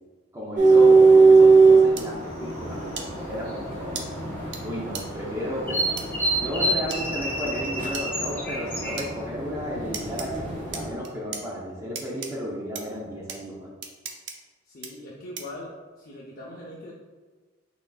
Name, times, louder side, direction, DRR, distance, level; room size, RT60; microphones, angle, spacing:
voice 1, 0.3-4.1 4.6-5.9 6.4-13.7, equal, 15° right, -4 dB, 0.6 m, -33 dB
sound 1, 0.6-9.1, right 1 dB, 10° left, 1.3 m, -32 dB
sound 2, 0.6-10.9, right 4 dB, 40° right, 1.2 m, -21 dB
sound 3, 2.0-2.1 3.0-3.1 4.0-4.1 4.5-4.6 4.9-5.0 6.0-6.1 6.9-7.0 7.9-8.1 9.0-9.1 9.9-10.3 10.7-11.4 12.0-12.3 12.8-12.9 13.3-13.4 13.8-14.3 14.8-14.9 15.4-15.6, right 6 dB, 60° right, 0.6 m, -35 dB
voice 2, 14.6-16.9, left 1 dB, 50° left, -5 dB, 0.6 m, -41 dB
6.1 x 3.8 x 2.3 m, 1.4 s
head